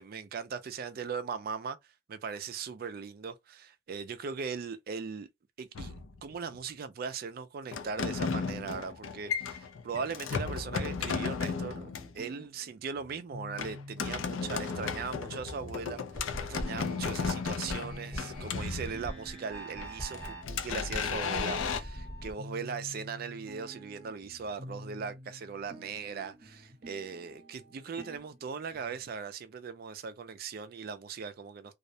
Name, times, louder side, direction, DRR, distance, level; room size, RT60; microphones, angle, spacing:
voice 1, 0.0-5.3 5.6-5.9 6.2-31.8, right 5 dB, 45° right, 0.3 m, -39 dB
sound 1, 5.7-6.6 7.7-12.2 13.6-19.3 19.8-21.8, left 5 dB, 75° left, 0.4 m, -35 dB
sound 2, 11.1-29.1, equal, 30° right, 0.8 m, -50 dB
sound 3, 16.1-22.3, equal, 5° left, 0.8 m, -42 dB
2.3 x 2.1 x 2.6 m
head